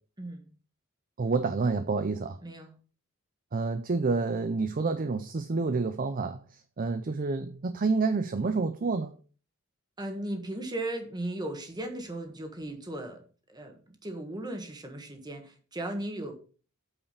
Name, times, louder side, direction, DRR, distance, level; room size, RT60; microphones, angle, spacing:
voice 1, 0.2-0.5 2.4-2.7 10.0-13.2 13.5-16.3, right 1 dB, 20° right, 1.5 m, -36 dB
voice 2, 1.2-2.4 3.5-9.1, right 4 dB, 40° right, 0.5 m, -29 dB
8.6 x 4.8 x 5.0 m
head